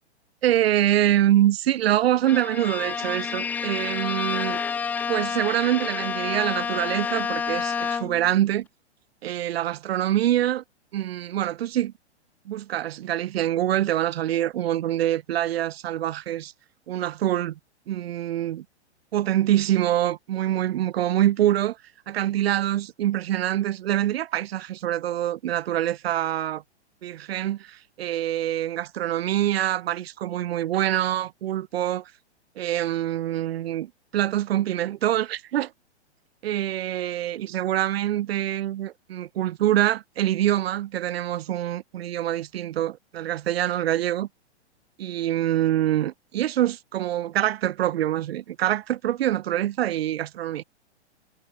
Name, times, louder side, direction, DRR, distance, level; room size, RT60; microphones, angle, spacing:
voice 1, 0.4-4.6 5.1-8.7 9.2-10.6 10.9-11.9 12.5-16.5 16.9-17.6 17.9-18.6 19.1-21.8 22.1-26.6 27.0-32.1 32.6-35.7 36.4-44.3 45.0-50.6, right 12 dB, 60° right, 1.0 m, -25 dB
Bowed string instrument, 2.3-8.3, left 6 dB, 5° left, 0.4 m, -29 dB
hypercardioid pair, 125°, 34 cm